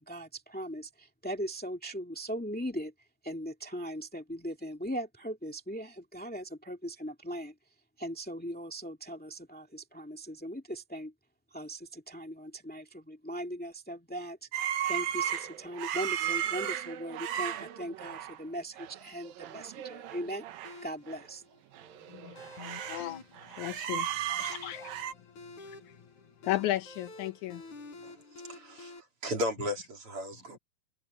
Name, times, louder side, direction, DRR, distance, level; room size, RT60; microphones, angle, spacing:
voice 1, 0.0-2.9 3.2-7.5 8.0-11.1 11.5-14.5 14.9-20.4 20.8-21.4, equal, 5° left, 0.6 m, -39 dB
sound 1, 14.5-18.4 18.8-19.0 19.2-20.7 21.1-21.2 21.7-23.1 23.4-25.1, right 10 dB, 70° right, 2.8 m, -35 dB
sound 2, 20.6-29.0, left 2 dB, 50° left, 5.8 m, -49 dB
voice 2, 22.1-25.0 25.6-25.9 26.4-27.6, left 15 dB, 80° left, 1.7 m, -36 dB
voice 3, 28.4-30.6, left 1 dB, 35° right, 4.0 m, -35 dB
omnidirectional pair, 4.4 m